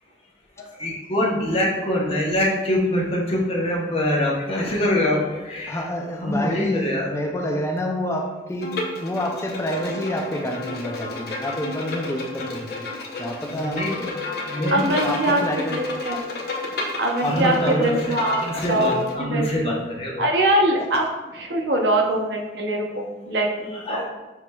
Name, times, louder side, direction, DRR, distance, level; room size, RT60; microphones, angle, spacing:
voice 1, 0.8-5.8 6.2-7.1 12.9-13.0 13.4-15.2 17.2-20.2 23.8-24.0, left 1 dB, 35° left, -3 dB, 0.8 m, -25 dB
voice 2, 5.7-12.9 13.2-13.8 15.0-15.8 17.2-17.9, left 1 dB, 15° left, 2 dB, 0.4 m, -28 dB
Bowed string instrument, 8.6-19.1, left 2 dB, 60° left, 0.6 m, -32 dB
voice 3, 14.7-15.4 15.7-16.2 17.0-18.4 18.7-19.7 20.2-21.1 21.3-24.0, right 1 dB, 70° right, 1 dB, 0.7 m, -23 dB
5.8 x 3.0 x 2.2 m, 1.1 s
head